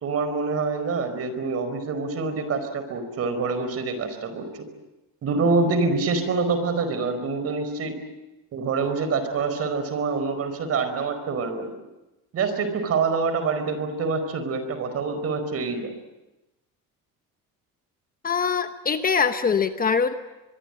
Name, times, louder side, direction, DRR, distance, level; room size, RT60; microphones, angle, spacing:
voice 1, 0.0-4.5 5.2-8.0 8.5-11.7 12.3-15.9, right 4 dB, 45° right, 9 dB, 4.8 m, -26 dB
voice 2, 18.2-20.1, left 6 dB, 25° left, 9 dB, 1.0 m, -23 dB
23.5 x 23.5 x 9.0 m, 1.0 s
cardioid pair, 145°, 34 cm